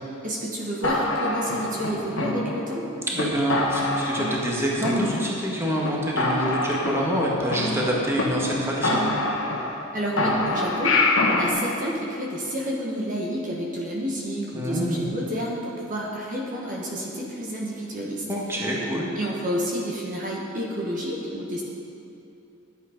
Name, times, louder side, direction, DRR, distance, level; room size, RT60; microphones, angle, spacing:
voice 1, 0.2-2.9 9.9-18.2 18.9-21.6, equal, 40° right, -3 dB, 1.3 m, -30 dB
sound 1, 0.8-2.8 3.2-3.3 3.5-4.5 4.8-5.5 5.8-5.9 6.2-8.2 8.5-8.6 8.8-9.9 10.2-11.5, left 2 dB, 65° left, 1.3 m, -25 dB
voice 2, 3.1-9.0 14.5-15.1 18.3-19.1, equal, 10° right, -4 dB, 1.4 m, -26 dB
11.5 x 8.4 x 5.1 m, 2.7 s
head